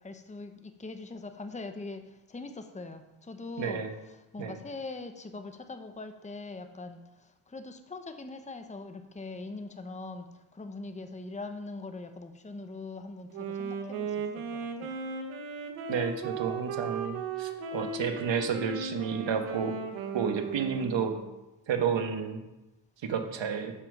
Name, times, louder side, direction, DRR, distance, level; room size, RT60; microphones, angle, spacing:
voice 1, 0.0-7.0 7.5-10.3 10.5-14.1 14.8-14.9 20.8-20.9, left 3 dB, 15° left, 7 dB, 1.0 m, -42 dB
voice 2, 3.6-3.9 4.4-4.6 15.9-19.7 20.1-21.2 21.7-22.4 23.0-23.7, right 6 dB, 65° right, 6 dB, 1.4 m, -31 dB
Wind instrument woodwind instrument, 13.3-21.4, right 5 dB, 85° right, 1.2 m, -36 dB
7.3 x 6.7 x 5.4 m, 1.0 s
supercardioid pair, 50°, 48 cm